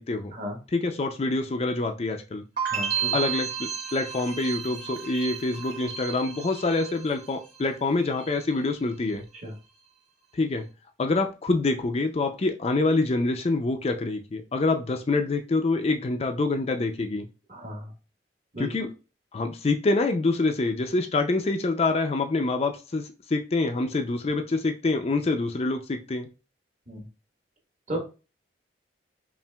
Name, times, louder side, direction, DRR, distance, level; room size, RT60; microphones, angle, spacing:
voice 1, 0.0-0.3 0.7-2.4 3.1-9.2 10.3-10.7 11.0-17.3 18.6-18.9 19.3-26.3, left 3 dB, 35° left, 6 dB, 0.4 m, -26 dB
sound 1, 2.6-7.6 7.9-8.5, right 7 dB, 85° right, 1.4 m, -33 dB
voice 2, 2.7-3.1 9.4-9.5 17.5-17.9 18.5-18.7 26.9-27.0 27.9-28.0, equal, 40° right, 1 dB, 1.2 m, -34 dB
5.6 x 2.5 x 2.3 m, 0.32 s
head